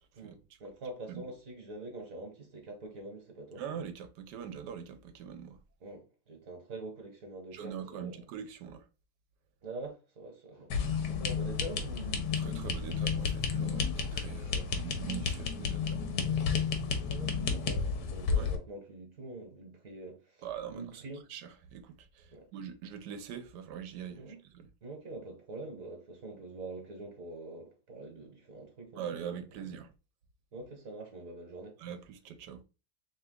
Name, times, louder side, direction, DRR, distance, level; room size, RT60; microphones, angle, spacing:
voice 1, 0.1-3.6 5.8-8.2 9.6-10.7 11.0-12.7 14.5-14.7 16.2-21.2 22.3-22.5 24.1-24.4 24.8-29.2 30.5-31.8, right 2 dB, 55° right, 1.5 m, -45 dB
voice 2, 3.6-5.6 7.5-8.8 12.4-16.0 18.4-18.5 20.4-21.0 21.3-24.2 24.5-24.7 28.9-29.9 31.8-32.6, right 8 dB, 85° right, 1.3 m, -42 dB
sound 1, 10.7-18.6, left 6 dB, 85° left, 1.4 m, -32 dB
3.4 x 3.3 x 3.6 m
omnidirectional pair, 1.8 m